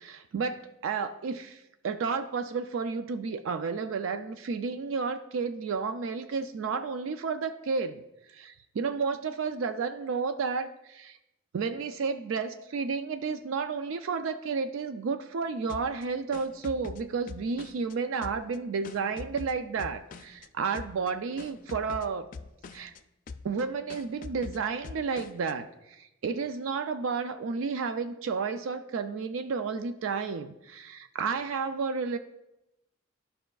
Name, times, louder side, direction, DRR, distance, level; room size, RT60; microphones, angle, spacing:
voice 1, 0.0-8.0 8.3-11.2 11.5-22.3 22.7-22.9 23.4-32.2, right 5 dB, 70° right, 9 dB, 0.4 m, -32 dB
sound 1, 15.7-17.9 18.2-20.5 20.7-21.1 21.4-23.0 23.3-23.6 23.9-25.5, left 4 dB, 40° left, 0.3 m, -44 dB
12.0 x 5.4 x 2.3 m, 0.91 s
head